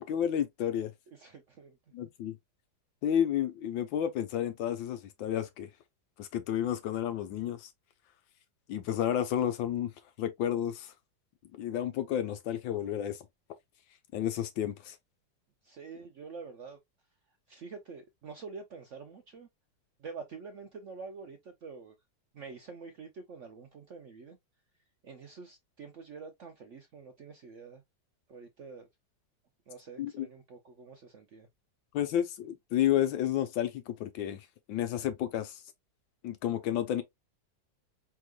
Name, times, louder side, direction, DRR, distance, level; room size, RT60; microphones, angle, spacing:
voice 1, 0.0-0.9 1.9-2.4 3.0-5.7 6.2-7.7 8.7-9.9 10.2-10.9 11.6-13.2 14.1-14.9 30.0-30.3 31.9-34.4 34.7-35.6 36.2-37.0, left 10 dB, 85° left, 1.5 m, -31 dB
voice 2, 1.1-1.8 15.6-16.8 17.5-19.5 20.0-21.9 22.3-24.4 25.0-27.8 28.3-28.9 29.7-31.5, right 5 dB, 65° right, 0.7 m, -47 dB
4.8 x 3.5 x 2.3 m
omnidirectional pair, 2.0 m